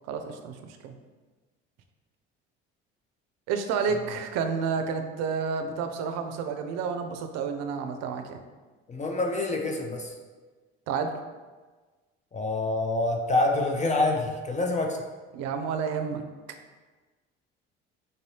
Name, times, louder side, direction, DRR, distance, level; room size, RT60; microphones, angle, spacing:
voice 1, 0.1-0.9 3.5-8.4 10.9-11.1 15.3-16.2, right 5 dB, 60° right, 7 dB, 0.5 m, -30 dB
voice 2, 8.9-10.1 12.3-15.0, left 2 dB, 25° left, 1 dB, 0.5 m, -26 dB
4.0 x 2.6 x 3.2 m, 1.3 s
hypercardioid pair, 65°, 29 cm